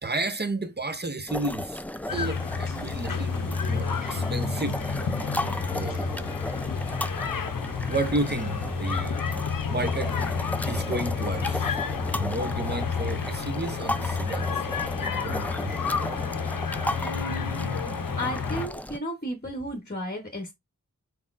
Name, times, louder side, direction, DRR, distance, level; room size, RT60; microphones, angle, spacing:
voice 1, 0.0-4.8 5.7-6.3 7.8-9.3 9.7-10.2 10.7-15.8, right 2 dB, 30° right, 0.7 m, -32 dB
sound 1, 1.3-19.0, left 1 dB, 5° left, 0.4 m, -35 dB
sound 2, 2.1-18.7, left 5 dB, 80° left, 0.6 m, -30 dB
sound 3, 8.3-18.5, left 2 dB, 50° right, 1.2 m, -46 dB
voice 2, 17.0-17.8 18.2-20.5, equal, 30° left, 1.0 m, -34 dB
4.2 x 4.1 x 2.4 m
wide cardioid pair, 45°, 33 cm